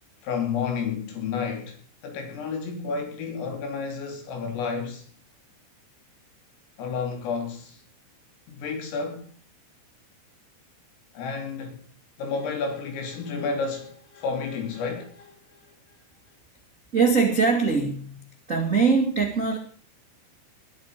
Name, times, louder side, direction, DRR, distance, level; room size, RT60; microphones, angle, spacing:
voice 1, 0.2-5.1 6.8-7.8 8.5-9.3 11.1-11.8 12.2-16.0, left 5 dB, 85° left, 5.9 m, -31 dB
voice 2, 16.9-18.2 18.5-19.6, right 5 dB, 80° right, 0.7 m, -22 dB
21.0 x 12.0 x 5.1 m
omnidirectional pair, 5.7 m